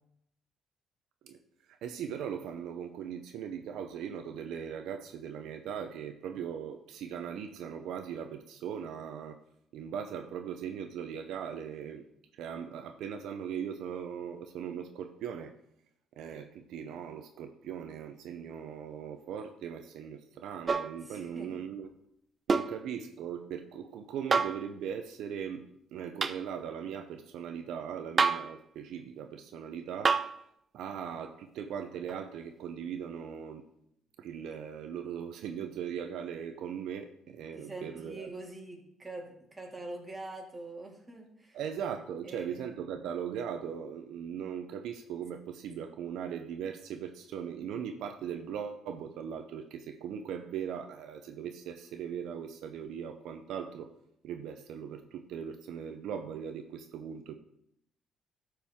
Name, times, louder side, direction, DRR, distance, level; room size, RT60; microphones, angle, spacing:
voice 1, 1.7-9.4 9.7-12.1 12.3-15.5 16.2-21.9 22.5-30.2 30.7-33.6 34.2-38.3 41.5-53.9 54.2-57.3, right 8 dB, 80° right, 6 dB, 0.6 m, -39 dB
sound 1, 20.7-21.0 22.5-22.8 24.3-24.6 26.2-26.4 28.2-28.5 30.0-30.4 32.1-32.2, right 4 dB, 35° right, 0.4 m, -27 dB
voice 2, 21.0-21.5 37.5-41.6 42.2-42.6, right 2 dB, 20° right, 0 dB, 2.1 m, -44 dB
12.5 x 4.6 x 3.6 m, 0.76 s
cardioid pair, 90°, 0 cm